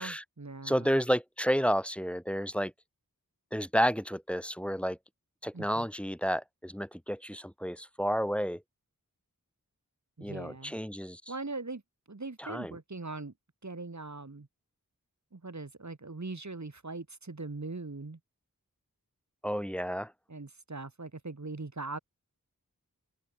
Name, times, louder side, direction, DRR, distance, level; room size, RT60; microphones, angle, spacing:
voice 1, 0.0-1.0 5.5-5.9 10.2-10.7 11.3-11.8 12.1-13.3 13.6-14.5 15.3-18.2 20.3-22.0, right 3 dB, 50° right, 2.1 m, -41 dB
voice 2, 0.6-2.7 3.5-5.0 5.4-8.6 10.2-11.2 12.4-12.7 19.4-20.1, equal, 5° left, 1.2 m, -31 dB
open air
wide cardioid pair, 40°, 36 cm